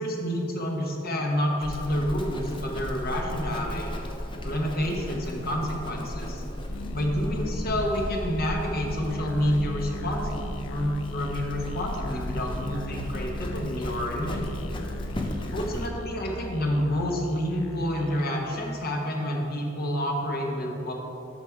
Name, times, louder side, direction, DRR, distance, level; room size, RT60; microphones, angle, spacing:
voice 1, 0.0-3.9 4.4-6.4 6.9-14.7 15.5-20.9, equal, 50° left, 0 dB, 1.1 m, -29 dB
Livestock farm animals working animals, 1.6-15.9, equal, 25° left, 0.6 m, -35 dB
Musical instrument, 6.6-18.4, left 2 dB, 90° left, 0.4 m, -39 dB
7.3 x 5.9 x 4.7 m, 2.9 s
head